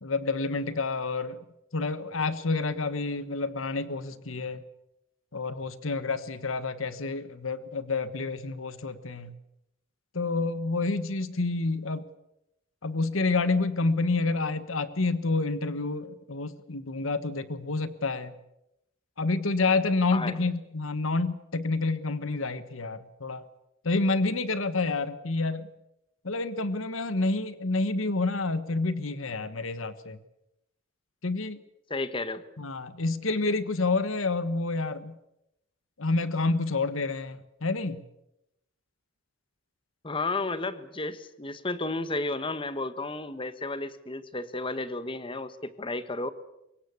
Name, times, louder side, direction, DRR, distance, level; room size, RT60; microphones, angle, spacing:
voice 1, 0.0-1.4 1.7-4.6 5.3-9.3 10.1-12.0 12.8-18.3 19.2-23.4 23.8-25.7 26.2-30.2 31.2-31.6 32.6-35.2 36.0-38.0, left 3 dB, 80° left, 14 dB, 1.4 m, -28 dB
voice 2, 20.1-20.4 31.9-32.4 40.0-46.3, left 2 dB, 25° left, 13 dB, 1.4 m, -32 dB
24.5 x 22.0 x 8.4 m, 0.87 s
head